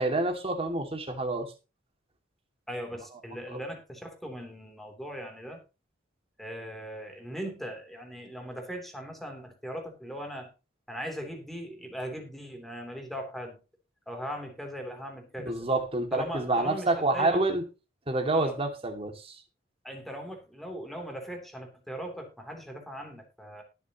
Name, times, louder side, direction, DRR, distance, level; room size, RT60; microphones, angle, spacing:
voice 1, 0.0-1.5 15.4-17.6 18.1-19.4, right 2 dB, 30° right, 5 dB, 2.3 m, -28 dB
voice 2, 2.7-5.6 6.4-10.5 10.9-13.6 14.1-15.7 16.1-17.4 18.3-18.5 19.8-23.6, equal, ahead, 3 dB, 3.2 m, -39 dB
19.5 x 6.9 x 3.0 m, 0.29 s
head